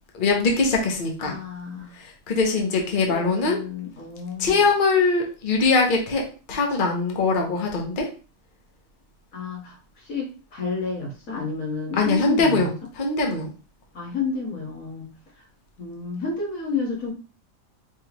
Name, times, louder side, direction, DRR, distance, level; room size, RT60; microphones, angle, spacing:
voice 1, 0.1-1.4 2.0-3.6 4.4-6.2 6.5-8.1 12.0-13.5, left 3 dB, 40° left, 1 dB, 1.0 m, -22 dB
voice 2, 1.2-1.9 3.1-4.6 9.3-9.8 10.0-12.7 13.9-15.1 15.8-17.1, left 4 dB, 85° left, -2 dB, 1.9 m, -30 dB
4.7 x 3.2 x 3.0 m, 0.36 s
omnidirectional pair, 1.4 m